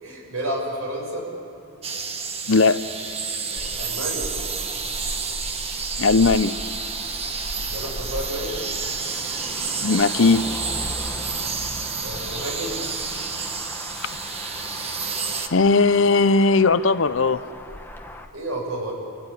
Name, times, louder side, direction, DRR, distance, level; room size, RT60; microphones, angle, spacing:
voice 1, 0.0-1.3 3.8-4.3 7.7-8.6 12.0-12.8 18.3-18.9, right 1 dB, 90° right, 0 dB, 6.7 m, -30 dB
sound 1, 1.8-15.5, right 5 dB, 30° right, 1.2 m, -30 dB
voice 2, 2.5-2.8 6.0-6.6 9.8-10.5 15.5-17.4, left 3 dB, 70° left, 14 dB, 0.7 m, -18 dB
Motor vehicle (road), 3.6-18.3, left 1 dB, 10° left, 1.2 m, -37 dB
28.0 x 16.5 x 9.9 m, 2.9 s
head